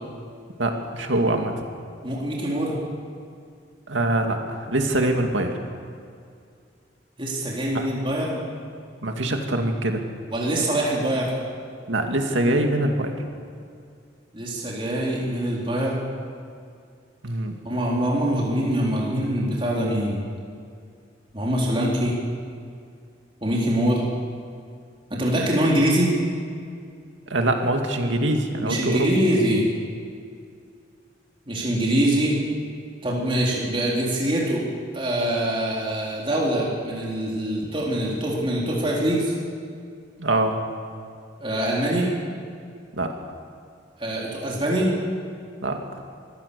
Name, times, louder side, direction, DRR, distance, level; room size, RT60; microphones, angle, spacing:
voice 1, 0.6-1.5 3.9-5.6 7.7-7.9 9.0-10.0 11.9-13.2 17.2-17.6 27.3-29.1 40.2-40.6 43.0-43.1 45.6-45.8, right 1 dB, 90° right, 3 dB, 2.4 m, -23 dB
voice 2, 2.0-2.7 7.2-8.4 10.3-11.3 14.3-16.0 17.6-20.2 21.3-22.2 23.4-24.0 25.1-26.1 28.6-29.7 31.5-32.4 33.0-34.6 34.9-39.3 41.4-42.1 44.0-44.9, right 1 dB, 30° right, -4 dB, 3.8 m, -24 dB
24.0 x 16.5 x 7.0 m, 2.3 s
head